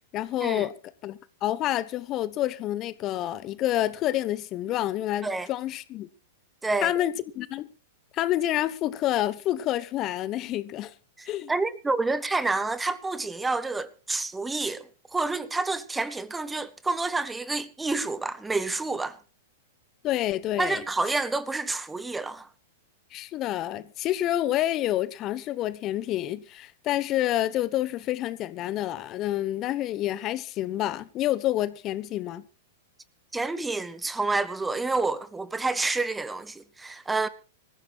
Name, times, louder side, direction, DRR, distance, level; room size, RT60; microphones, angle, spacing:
voice 1, 0.1-0.7 1.0-6.1 6.8-7.7 8.1-10.9 11.3-11.5 20.0-20.8 23.1-32.4, left 13 dB, 35° left, 1.0 m, -28 dB
voice 2, 11.2-14.8 15.1-19.2 20.6-22.5 33.3-37.3, right 3 dB, 10° right, 1.0 m, -28 dB
25.5 x 15.0 x 2.4 m
figure-of-eight pair, 100°, 0 cm